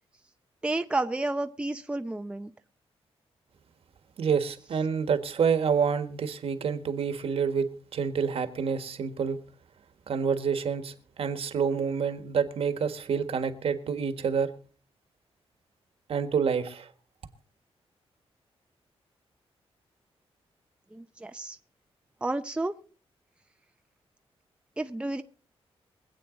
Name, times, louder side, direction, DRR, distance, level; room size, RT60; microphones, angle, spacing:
voice 1, 0.6-2.5 20.9-21.6 22.2-22.7 24.8-25.2, right 2 dB, 10° right, 0.7 m, -31 dB
voice 2, 4.2-9.4 10.1-14.5 16.1-16.9, right 6 dB, 65° right, 1.6 m, -28 dB
24.0 x 8.5 x 3.9 m
wide cardioid pair, 120°, 10 cm